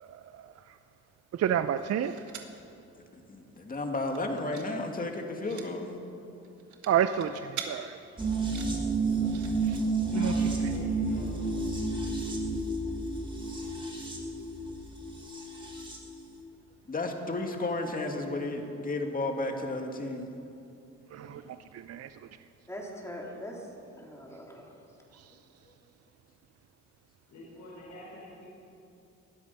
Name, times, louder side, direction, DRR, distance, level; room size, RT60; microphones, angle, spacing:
voice 1, 1.4-2.2 6.9-8.0 9.7-9.8 10.1-10.3 21.1-21.4 21.9-22.1, right 9 dB, 55° right, 10 dB, 0.6 m, -28 dB
sound 1, 1.5-2.6 3.0-3.1 3.4-3.7 4.0-4.7 5.0-5.7 6.4-7.7 8.3-9.5 10.4-10.5 10.8-10.9, right 8 dB, 75° right, 1.7 m, -44 dB
voice 2, 3.3-6.0 12.2-12.3 16.9-20.3, left 2 dB, 30° left, 3 dB, 2.3 m, -33 dB
sound 2, 8.2-16.1 16.4-16.5, right 3 dB, 15° right, 3.1 m, -31 dB
voice 3, 10.0-11.5 21.3-21.4 27.3-28.5, left 1 dB, 75° left, -5 dB, 4.8 m, -46 dB
voice 4, 22.7-24.7, equal, 10° left, -2 dB, 3.5 m, -42 dB
20.0 x 13.0 x 5.6 m, 2.7 s
cardioid pair, 90°, 30 cm